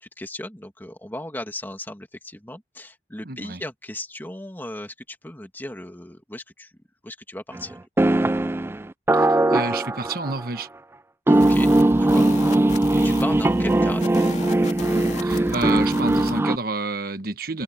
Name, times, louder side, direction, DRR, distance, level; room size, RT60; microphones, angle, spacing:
voice 1, 0.0-6.7 7.0-7.8 11.3-12.6 13.0-14.3, left 1 dB, 10° left, 2.5 m, -36 dB
voice 2, 3.2-3.6 9.1-10.7 15.2-17.6, right 3 dB, 55° right, 1.5 m, -29 dB
sound 1, 7.5-7.6 8.0-10.6 11.3-16.6, right 1 dB, 15° right, 0.3 m, -20 dB
sound 2, 11.3-16.4, left 2 dB, 40° left, 2.7 m, -35 dB
head